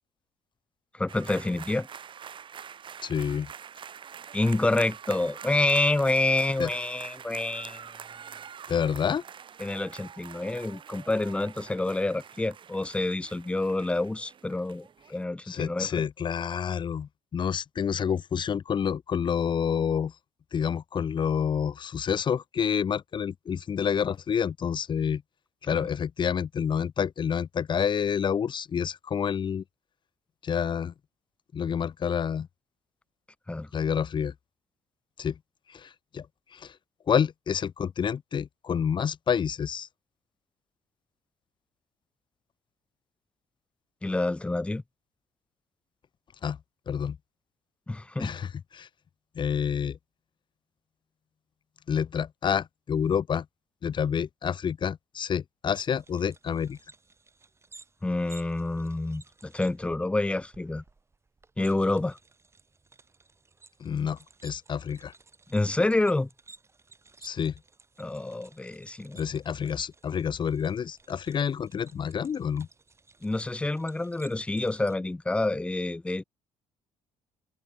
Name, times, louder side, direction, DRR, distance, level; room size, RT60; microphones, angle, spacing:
voice 1, 1.0-1.9 4.3-7.9 9.6-15.9 25.7-25.9 33.5-33.7 44.0-44.8 47.9-48.3 58.0-60.8 61.6-62.2 65.5-66.3 68.0-69.2 73.2-76.2, left 2 dB, 10° left, 0.5 m, -28 dB
sound 1, 1.1-15.2, right 7 dB, 40° right, 1.9 m, -45 dB
voice 2, 3.0-3.5 6.6-6.7 8.7-9.2 15.5-20.1 20.5-25.2 25.6-29.6 30.4-30.9 31.5-32.5 33.7-34.3 35.2-35.4 35.7-36.3 36.5-36.7 37.1-39.9 46.4-46.6 46.9-47.2 48.2-48.9 49.3-50.0 51.9-53.4 53.8-56.8 63.8-65.1 67.2-67.5 69.1-72.7, left 7 dB, 40° left, 1.3 m, -28 dB
sound 2, 55.7-75.0, right 3 dB, 20° right, 6.5 m, -56 dB
cardioid pair, 115°, 13 cm